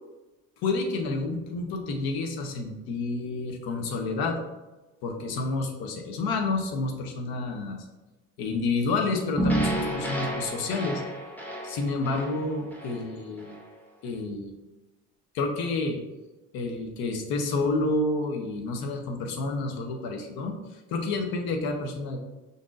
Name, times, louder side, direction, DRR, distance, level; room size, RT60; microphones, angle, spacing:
voice 1, 0.6-4.4 5.0-7.8 8.4-11.0 11.6-13.5 14.0-14.5 15.3-16.0 16.5-22.2, left 3 dB, 75° left, 4 dB, 0.9 m, -29 dB
sound 1, 9.4-13.7, right 1 dB, 5° left, 0.8 m, -31 dB
5.2 x 3.9 x 2.5 m, 1.1 s
cardioid pair, 110°, 37 cm